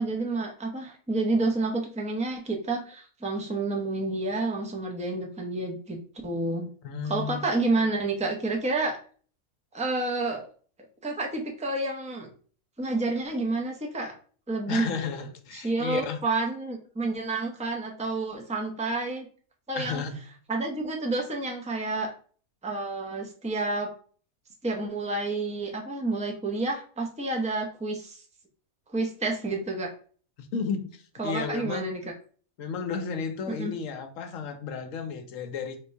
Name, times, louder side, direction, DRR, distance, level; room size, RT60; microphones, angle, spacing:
voice 1, 0.0-6.0 6.2-6.7 7.0-9.0 9.7-10.5 11.0-12.3 12.8-14.1 14.5-14.9 15.5-19.3 19.7-20.0 20.5-22.1 22.6-23.9 24.6-28.2 28.9-29.9 31.2-32.0 33.6-33.7, right 2 dB, 10° right, 0.5 m, -29 dB
voice 2, 6.8-7.5 14.7-16.2 19.8-20.1 30.4-31.9 32.6-35.8, left 5 dB, 70° left, 1.1 m, -33 dB
3.7 x 2.7 x 4.4 m
omnidirectional pair, 1.5 m